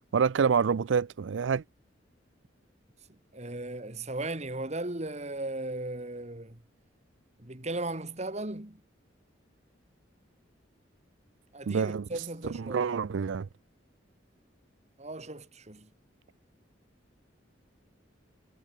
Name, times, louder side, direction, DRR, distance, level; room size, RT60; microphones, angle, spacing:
voice 1, 0.1-1.6 11.7-12.0 12.7-13.5, right 6 dB, 90° right, 0.4 m, -27 dB
voice 2, 3.1-6.6 7.4-8.8 11.5-12.9 15.0-15.9, right 2 dB, 35° right, 2.2 m, -37 dB
head